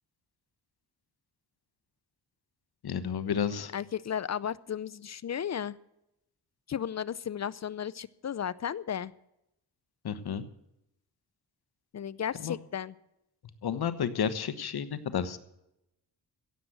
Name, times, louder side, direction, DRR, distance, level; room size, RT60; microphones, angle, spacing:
voice 1, 2.8-3.7 10.0-10.4 12.4-12.5 13.6-15.4, left 7 dB, 65° left, 13 dB, 1.2 m, -31 dB
voice 2, 3.7-5.8 6.7-9.1 11.9-13.0, left 8 dB, 40° left, 19 dB, 0.5 m, -34 dB
16.0 x 7.7 x 7.9 m, 0.85 s
cardioid pair, 70°, 40 cm